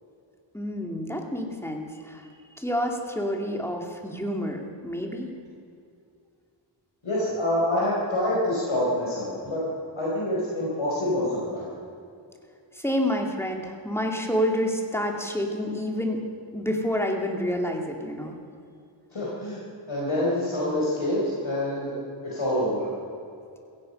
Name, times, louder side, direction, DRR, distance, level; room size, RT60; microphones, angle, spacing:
voice 1, 0.5-2.3 2.6-5.3 12.7-16.2 16.5-18.4, equal, 5° left, 2 dB, 2.6 m, -28 dB
voice 2, 7.0-9.6 10.0-11.7 19.1-19.6 19.9-21.9 22.2-22.9, left 1 dB, 70° left, -6 dB, 4.7 m, -26 dB
16.0 x 16.0 x 5.5 m, 2.5 s
wide cardioid pair, 55°, 49 cm